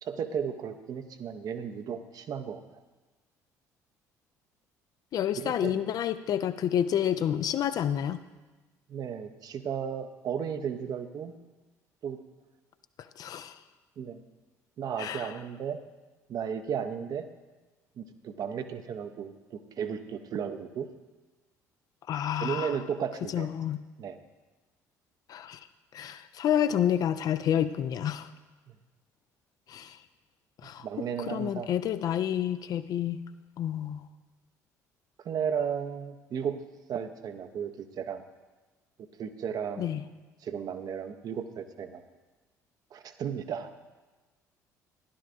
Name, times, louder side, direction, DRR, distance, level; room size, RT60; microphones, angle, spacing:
voice 1, 0.0-2.6 5.4-5.8 8.9-11.3 12.0-12.2 14.0-14.2 14.8-15.8 16.3-17.2 18.0-20.9 22.4-23.5 24.0-24.2 30.8-31.7 35.2-36.6 36.9-38.2 39.2-40.0 40.4-42.0 42.9-43.7, right 7 dB, 45° right, 8 dB, 0.7 m, -34 dB
voice 2, 5.1-8.2 13.2-13.6 15.0-15.3 22.1-22.8 23.3-23.8 25.3-25.6 25.9-28.3 29.7-30.0 30.6-33.2 33.6-34.0 39.8-40.0, left 10 dB, 45° left, 12 dB, 0.5 m, -29 dB
15.0 x 11.5 x 2.5 m, 1.2 s
figure-of-eight pair, 50°, 9 cm